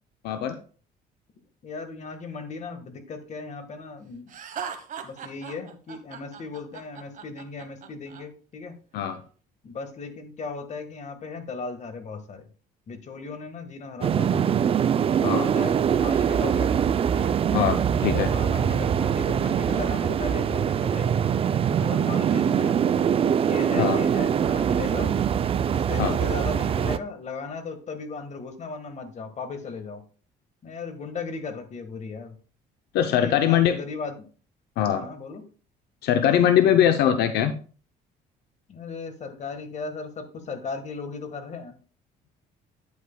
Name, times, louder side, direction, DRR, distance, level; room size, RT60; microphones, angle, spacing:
voice 1, 0.2-0.6 8.9-9.2 15.2-15.5 17.5-18.3 23.8-24.0 26.0-26.2 32.9-33.8 34.8-35.0 36.0-37.6, left 10 dB, 75° left, 9 dB, 0.7 m, -22 dB
voice 2, 1.6-4.3 5.0-8.8 9.6-12.4 12.9-14.6 15.3-17.4 18.1-21.2 21.8-22.8 23.4-25.1 25.7-30.0 30.6-32.4 33.1-34.1 34.9-35.4 38.7-41.8, left 4 dB, 45° left, 8 dB, 1.6 m, -36 dB
Laughter, 4.3-8.2, right 7 dB, 50° right, 1.1 m, -38 dB
sound 1, 14.0-27.0, right 8 dB, 35° right, 0.4 m, -23 dB
9.3 x 8.5 x 2.2 m, 0.39 s
cardioid pair, 110°, 17 cm